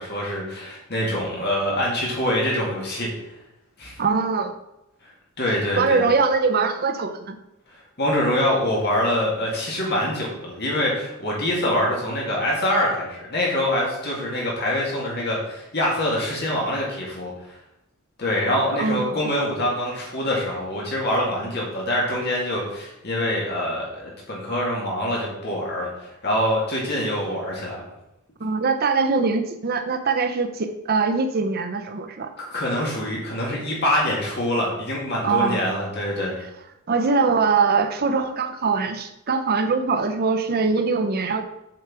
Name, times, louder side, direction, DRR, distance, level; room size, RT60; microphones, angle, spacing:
voice 1, 0.0-3.1 3.8-4.0 5.4-6.0 7.7-17.3 18.2-27.8 32.4-36.4, left 1 dB, 50° left, -3 dB, 2.1 m, -25 dB
voice 2, 4.0-4.5 5.5-7.4 18.8-19.2 28.4-32.3 35.2-35.7 36.4-36.5 36.9-41.4, right 4 dB, 45° right, 8 dB, 0.6 m, -22 dB
7.7 x 4.7 x 6.0 m, 0.89 s
head